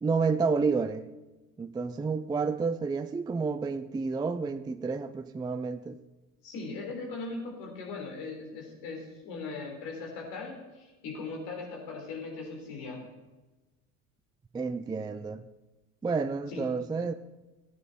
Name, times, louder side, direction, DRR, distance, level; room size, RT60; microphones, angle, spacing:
voice 1, 0.0-1.1 1.6-6.0 14.5-15.4 16.0-17.1, right 4 dB, 10° right, 10 dB, 0.4 m, -30 dB
voice 2, 6.4-13.1 16.5-16.7, left 3 dB, 65° left, 0 dB, 3.8 m, -39 dB
15.0 x 9.3 x 4.2 m, 1.1 s
hypercardioid pair, 65°, 43 cm